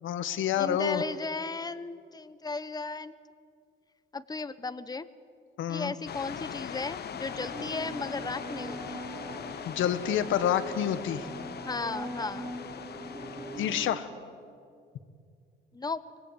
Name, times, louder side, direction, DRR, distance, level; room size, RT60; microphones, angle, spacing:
voice 1, 0.0-1.0 5.6-5.9 9.6-11.3 13.6-14.1, left 9 dB, 80° left, 11 dB, 1.5 m, -28 dB
voice 2, 0.5-3.1 4.1-5.0 5.7-9.0 11.7-12.5 15.7-16.0, left 3 dB, 20° left, 13 dB, 1.0 m, -35 dB
sound 1, 6.1-13.9, left 8 dB, 55° left, 1.1 m, -41 dB
sound 2, 7.2-14.0, right 2 dB, 20° right, 3.4 m, -42 dB
24.5 x 21.0 x 8.4 m, 2.2 s
cardioid pair, 90°, 20 cm